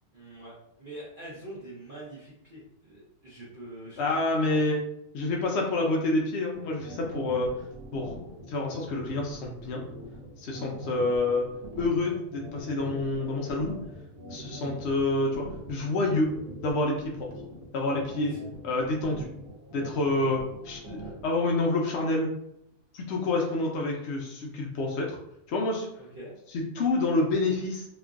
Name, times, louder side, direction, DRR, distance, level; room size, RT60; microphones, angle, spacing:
voice 1, 0.1-4.0 4.4-4.6 18.1-18.4 20.1-20.3 26.0-26.3, right 1 dB, 50° right, -7 dB, 0.6 m, -44 dB
voice 2, 4.0-4.8 5.1-7.5 7.9-8.2 8.5-9.8 10.4-11.5 11.8-13.8 14.3-16.3 16.6-17.3 17.7-18.3 18.6-19.3 19.7-20.4 20.6-21.0 21.2-22.3 22.9-25.2 25.5-25.9 26.5-27.8, left 2 dB, 70° left, -1 dB, 0.6 m, -28 dB
sound 1, 6.5-21.3, right 1 dB, 70° right, 1.3 m, -42 dB
2.9 x 2.5 x 2.4 m, 0.79 s
omnidirectional pair, 1.6 m